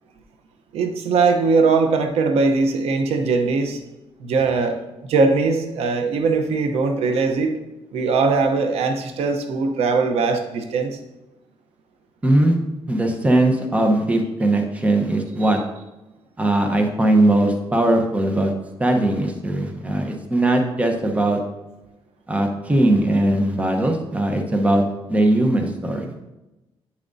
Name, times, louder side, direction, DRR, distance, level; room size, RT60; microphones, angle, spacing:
voice 1, 0.7-3.8 4.2-4.8 5.1-7.6 7.9-11.0 15.4-15.5, right 4 dB, 85° right, 5 dB, 0.8 m, -20 dB
voice 2, 12.2-12.6 12.9-15.6 16.4-18.5 18.8-21.4 22.3-24.8 25.1-26.0, right 1 dB, 15° right, 4 dB, 0.9 m, -19 dB
9.1 x 7.1 x 2.7 m, 1.0 s
cardioid pair, 130°, 10 cm